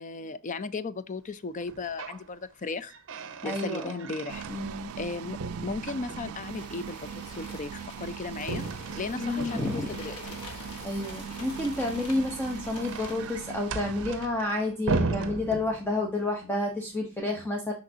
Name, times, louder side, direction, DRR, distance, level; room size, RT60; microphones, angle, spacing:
voice 1, 0.0-2.9 3.4-4.4 5.0-7.0 7.4-8.7 9.0-10.4, left 4 dB, 35° left, 0.4 m, -36 dB
sound 1, 1.6-2.3 2.6-5.1 5.4-6.6 8.4-10.0 12.0-16.2, right 3 dB, 60° right, 0.8 m, -36 dB
voice 2, 3.4-4.1 4.5-4.9 9.1-9.9 10.8-17.7, left 2 dB, 10° left, 0.9 m, -30 dB
sound 2, 4.3-14.1, right 8 dB, 75° right, 0.4 m, -41 dB
sound 3, 6.4-13.5, left 2 dB, 80° left, 1.5 m, -45 dB
6.5 x 5.8 x 2.7 m
head